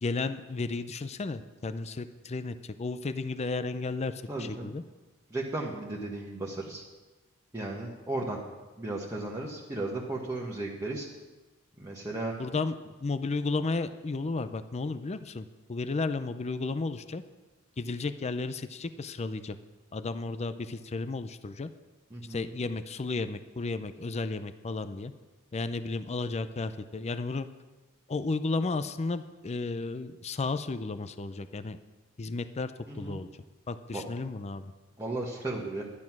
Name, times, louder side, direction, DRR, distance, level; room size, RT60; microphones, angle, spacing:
voice 1, 0.0-4.1 4.4-4.8 12.4-12.7 13.0-17.2 17.8-19.6 19.9-21.7 22.3-25.1 25.5-27.5 28.1-31.8 32.2-32.7 33.0-33.3 33.7-34.6, left 3 dB, 30° left, 11 dB, 0.5 m, -33 dB
voice 2, 4.3-4.7 5.3-6.8 7.5-8.4 8.8-11.1 11.8-12.3 22.1-22.5 32.9-33.2 33.9-34.0 35.0-35.8, right 2 dB, 15° right, -4 dB, 1.4 m, -35 dB
11.5 x 11.0 x 6.0 m, 1.2 s
head